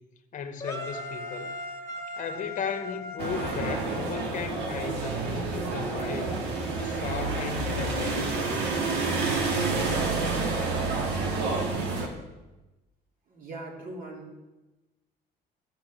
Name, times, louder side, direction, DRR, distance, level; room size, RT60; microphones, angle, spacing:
voice 1, 0.3-1.5 2.2-6.4 6.8-8.8, left 7 dB, 50° left, 1.3 m, -36 dB
sound 1, 0.6-4.7, left 1 dB, 15° left, 1.6 m, -38 dB
sound 2, 3.2-12.1, right 3 dB, 85° right, 2.1 m, -29 dB
voice 2, 13.3-14.4, right 2 dB, 55° right, 3.2 m, -40 dB
13.0 x 6.0 x 7.4 m
cardioid pair, 110°, 17 cm